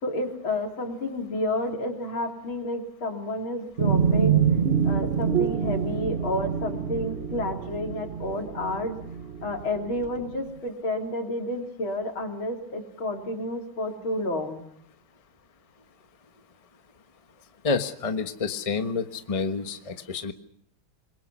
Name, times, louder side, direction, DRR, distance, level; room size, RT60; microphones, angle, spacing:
voice 1, 0.0-4.4 4.8-9.0 9.4-14.6, left 1 dB, 80° left, 3 dB, 4.0 m, -30 dB
sound 1, 3.8-10.3, right 7 dB, 40° right, 0.9 m, -26 dB
voice 2, 17.6-20.3, left 4 dB, 20° left, 7 dB, 1.1 m, -28 dB
28.5 x 22.0 x 6.2 m, 0.69 s
omnidirectional pair, 2.2 m